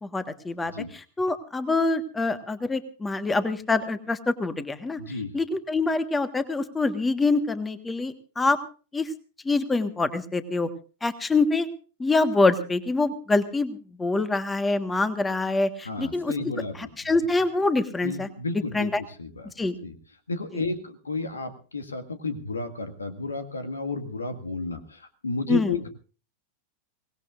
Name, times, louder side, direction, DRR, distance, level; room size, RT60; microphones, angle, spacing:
voice 1, 0.0-5.0 5.3-8.6 8.9-9.1 9.4-10.7 11.0-11.7 12.0-16.3 16.8-18.3 18.7-19.0 19.6-19.7 20.5-20.6 25.5-25.8, left 3 dB, 10° left, 11 dB, 1.5 m, -25 dB
voice 2, 5.0-5.3 15.8-16.9 18.0-18.9 19.2-19.5 19.8-19.9 20.3-25.9, left 3 dB, 75° left, 9 dB, 1.9 m, -32 dB
24.0 x 19.0 x 2.6 m, 0.38 s
figure-of-eight pair, 90°, 0 cm